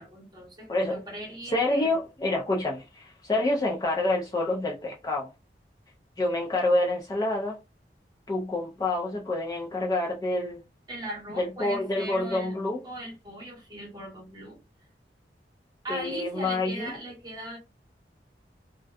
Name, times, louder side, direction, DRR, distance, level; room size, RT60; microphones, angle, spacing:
voice 1, 0.0-2.0 10.9-12.6 12.8-14.6 15.8-17.6, right 1 dB, 25° right, 0.9 m, -39 dB
voice 2, 0.7-1.0 1.5-5.3 6.2-7.6 8.3-10.6 11.4-12.8 15.9-16.9, left 2 dB, 20° left, 0.3 m, -27 dB
2.5 x 2.2 x 2.3 m
head